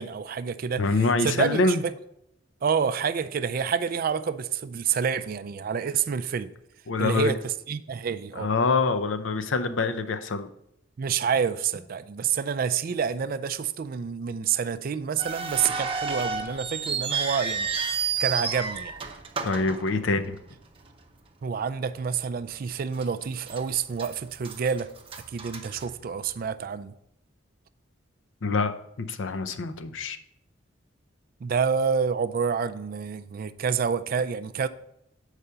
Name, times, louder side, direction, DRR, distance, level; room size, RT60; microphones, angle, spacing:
voice 1, 0.0-1.9 2.6-6.5 7.0-8.5 11.0-17.7 18.2-18.9 21.4-24.9 25.3-26.9 31.4-34.7, right 6 dB, 50° right, 0.3 m, -28 dB
voice 2, 0.8-1.8 6.9-7.3 8.4-10.5 19.4-20.4 28.4-28.7 29.1-30.2, left 3 dB, 80° left, 0.6 m, -25 dB
sound 1, 15.2-20.5 20.8-20.9 21.6-21.8 22.3-22.4 23.0-23.6 23.9-26.4, right 5 dB, 30° right, 0.7 m, -31 dB
6.6 x 4.8 x 5.6 m
head